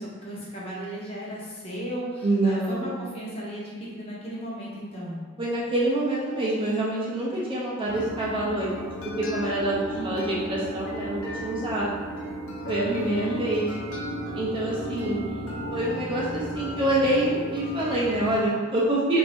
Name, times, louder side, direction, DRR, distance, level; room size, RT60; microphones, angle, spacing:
voice 1, 0.0-5.2 9.9-10.4 12.8-13.4 14.8-15.5, right 1 dB, 30° left, -6 dB, 0.8 m, -35 dB
voice 2, 2.2-3.0 5.4-8.8 9.2-11.9 12.7-13.7 14.3-15.2 15.7-19.2, right 1 dB, 25° right, -6 dB, 0.5 m, -26 dB
sound 1, 7.9-18.4, equal, 75° left, 0.7 m, -34 dB
3.1 x 2.6 x 3.4 m, 1.5 s
head